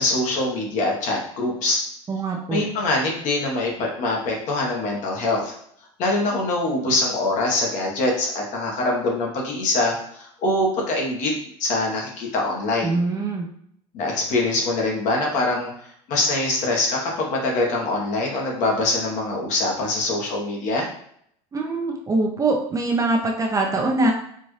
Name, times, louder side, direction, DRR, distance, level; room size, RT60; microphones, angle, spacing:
voice 1, 0.0-1.8 2.5-5.5 6.0-11.3 11.6-13.0 13.9-20.9, left 2 dB, 50° left, -1 dB, 1.3 m, -24 dB
voice 2, 2.1-2.6 12.8-13.5 21.5-24.1, right 2 dB, 20° right, 1 dB, 0.6 m, -23 dB
4.3 x 2.6 x 3.2 m, 0.67 s
supercardioid pair, 120°, 16 cm